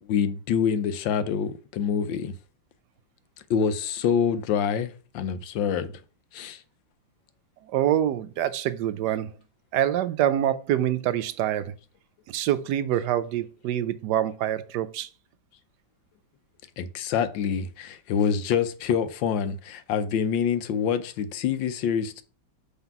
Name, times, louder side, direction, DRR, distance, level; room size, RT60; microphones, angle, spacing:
voice 1, 0.1-2.3 3.5-5.9 6.3-6.6 16.8-22.2, left 7 dB, 75° left, 1.4 m, -26 dB
voice 2, 7.7-9.3 9.7-11.7 12.3-15.1, right 11 dB, 70° right, 1.1 m, -25 dB
5.7 x 3.6 x 5.8 m
omnidirectional pair, 2.1 m